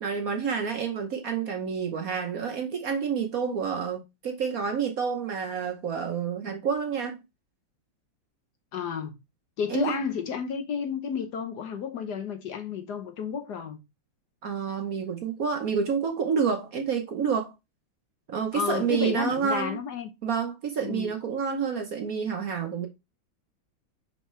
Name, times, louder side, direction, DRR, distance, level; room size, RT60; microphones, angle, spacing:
voice 1, 0.0-7.2 9.7-9.9 14.4-17.5 18.3-19.8 20.2-22.9, right 6 dB, 55° right, 1.1 m, -29 dB
voice 2, 8.7-9.1 9.6-13.8 18.5-20.1 20.8-21.1, left 7 dB, 60° left, 1.3 m, -31 dB
5.7 x 5.5 x 3.1 m
omnidirectional pair, 2.2 m